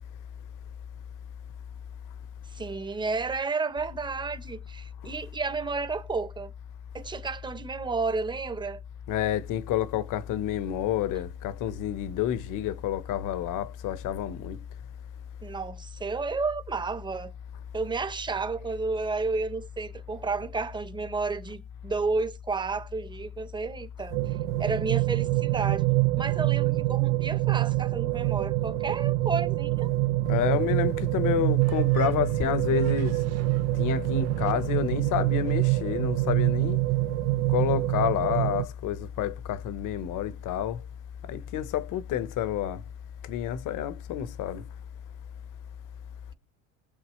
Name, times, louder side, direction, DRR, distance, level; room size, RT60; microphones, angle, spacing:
voice 1, 2.5-6.5 6.9-8.8 15.4-17.3 17.7-25.9 26.2-29.9, right 4 dB, 10° right, 0.9 m, -31 dB
voice 2, 9.1-14.6 30.3-33.2 33.7-36.8 37.5-40.8 41.3-42.8 43.2-44.6, left 10 dB, 50° left, 1.2 m, -29 dB
sound 1, 24.1-38.6, right 22 dB, 75° right, 0.8 m, -26 dB
sound 2, 31.6-35.6, right 11 dB, 40° right, 1.0 m, -47 dB
20.0 x 7.2 x 3.2 m
cardioid pair, 125°, 39 cm